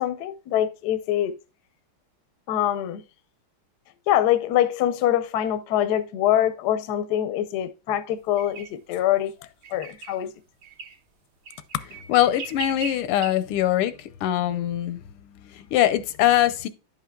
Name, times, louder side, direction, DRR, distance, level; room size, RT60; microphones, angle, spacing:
voice 1, 0.0-1.3 2.5-3.0 4.1-9.3 9.7-10.3, left 11 dB, 70° left, 1.0 m, -24 dB
sound 1, 8.4-8.7 9.6-10.2 10.6-11.0 11.5-13.3, right 5 dB, 70° right, 2.0 m, -38 dB
voice 2, 12.1-15.0 15.4-16.7, left 12 dB, 85° left, 1.6 m, -22 dB
11.0 x 5.7 x 2.3 m
omnidirectional pair, 2.4 m